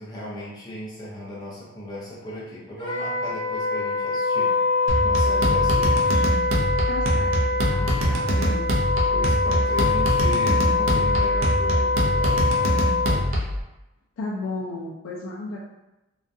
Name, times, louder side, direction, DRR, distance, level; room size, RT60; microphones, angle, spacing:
voice 1, 0.0-4.5 5.0-6.2 9.1-12.7 13.0-13.3, left 1 dB, 20° left, -6 dB, 0.6 m, -36 dB
Wind instrument woodwind instrument, 2.8-13.2, left 3 dB, 60° left, 0.8 m, -24 dB
sound 1, 4.9-13.6, equal, 75° right, 0.5 m, -24 dB
voice 2, 6.9-8.6 14.2-15.6, left 2 dB, 85° left, -3 dB, 0.3 m, -34 dB
2.3 x 2.2 x 2.6 m, 0.98 s
head